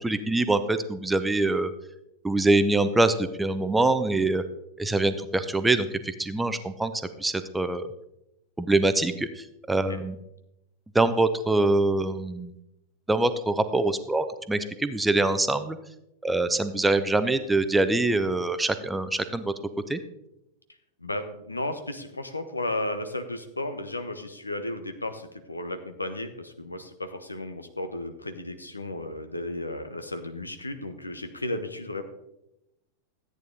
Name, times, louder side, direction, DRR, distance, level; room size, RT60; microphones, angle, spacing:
voice 1, 0.0-1.7 2.2-4.4 4.8-6.9 7.2-7.9 8.6-10.2 10.9-12.5 13.1-15.8 16.2-19.5 19.9-20.0, right 2 dB, 10° right, 11 dB, 0.7 m, -24 dB
voice 2, 21.0-32.0, left 1 dB, 80° left, 8 dB, 1.0 m, -34 dB
13.5 x 9.2 x 3.8 m, 0.86 s
figure-of-eight pair, 90°, 0 cm